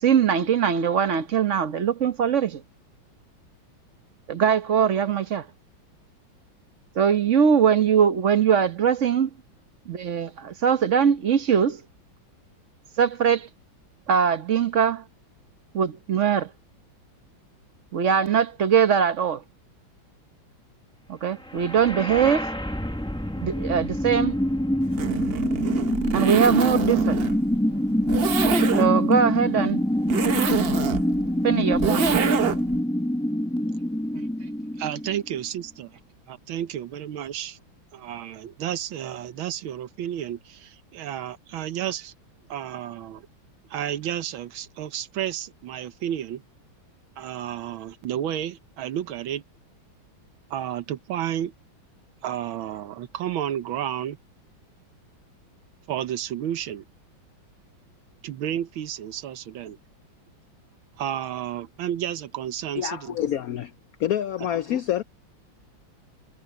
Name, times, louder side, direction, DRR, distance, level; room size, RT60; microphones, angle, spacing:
voice 1, 0.0-2.6 4.3-5.5 6.9-9.3 9.9-11.8 13.0-13.5 14.1-15.0 15.7-16.5 17.9-19.4 21.1-22.5 23.4-24.4 26.1-27.2 28.8-29.8 31.4-32.1 34.1-34.2, right 7 dB, 50° right, 1.0 m, -21 dB
sound 1, 21.5-35.4, left 1 dB, 5° left, 0.7 m, -25 dB
Zipper (clothing), 24.8-32.8, right 7 dB, 65° right, 0.5 m, -27 dB
voice 2, 34.8-35.9 36.3-37.6 37.9-42.1 42.5-43.3 43.7-46.4 47.2-49.4 50.5-51.5 52.2-54.2 55.9-56.8 58.2-59.8 61.0-63.1, right 10 dB, 80° right, 1.7 m, -31 dB
voice 3, 62.8-63.7 64.0-65.0, left 11 dB, 80° left, 0.8 m, -27 dB
omnidirectional pair, 2.2 m